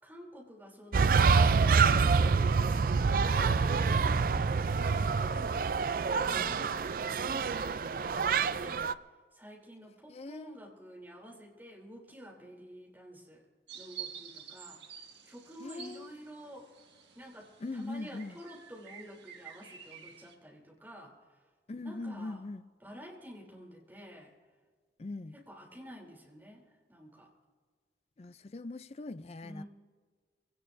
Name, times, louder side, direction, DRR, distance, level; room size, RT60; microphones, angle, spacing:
voice 1, 0.0-2.5 2.8-8.9 9.3-13.4 13.7-16.7 17.1-21.4 21.8-22.4 22.8-24.3 25.3-27.3 29.4-29.6, equal, 10° right, 3.2 m, -50 dB
sound 1, 0.9-8.9, right 5 dB, 50° right, 0.4 m, -26 dB
voice 2, 3.1-3.4 6.4-6.5 10.1-10.6 15.6-16.1 17.6-18.4 21.7-22.6 25.0-25.4 28.2-29.6, left 2 dB, 35° left, 0.4 m, -41 dB
sound 2, 13.7-20.3, right 8 dB, 85° right, 1.8 m, -49 dB
24.0 x 17.5 x 2.6 m
head